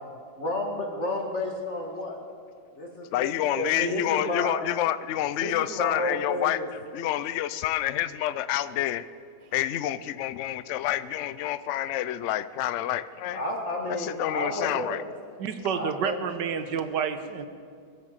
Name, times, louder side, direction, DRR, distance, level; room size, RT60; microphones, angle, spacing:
voice 1, 0.4-2.2 2.8-3.3 3.5-4.6 5.4-6.7 13.3-15.0 15.7-16.2, left 1 dB, 40° left, 1 dB, 2.2 m, -31 dB
voice 2, 3.1-6.6 6.9-9.1 9.5-13.4 13.9-15.0, left 12 dB, 85° left, 15 dB, 0.6 m, -28 dB
voice 3, 15.4-17.5, right 7 dB, 75° right, 9 dB, 1.6 m, -29 dB
22.0 x 7.6 x 7.4 m, 2.2 s
omnidirectional pair, 1.9 m